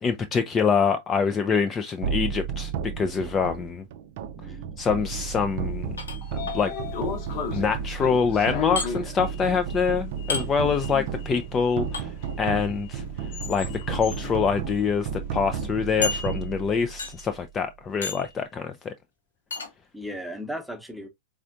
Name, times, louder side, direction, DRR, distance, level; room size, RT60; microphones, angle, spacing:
voice 1, 0.0-3.8 4.8-6.0 6.5-6.7 7.5-13.0 13.5-18.9, left 6 dB, 25° left, 0.4 m, -25 dB
sound 1, 2.0-17.3, right 6 dB, 50° right, 0.5 m, -33 dB
voice 2, 4.4-4.8 10.9-11.1 19.9-21.1, equal, ahead, 0.9 m, -36 dB
Sliding door, 5.8-15.9, left 7 dB, 45° left, 1.0 m, -37 dB
sound 2, 6.0-6.6 8.8-8.9 10.3-10.5 11.9-12.1 13.4-13.7 14.4-14.5 14.9-15.0 16.0-16.6 17.0-17.3 18.0-18.3 19.5-19.7, left 4 dB, 70° left, 1.1 m, -31 dB
4.2 x 3.6 x 2.5 m
figure-of-eight pair, 90°, 0 cm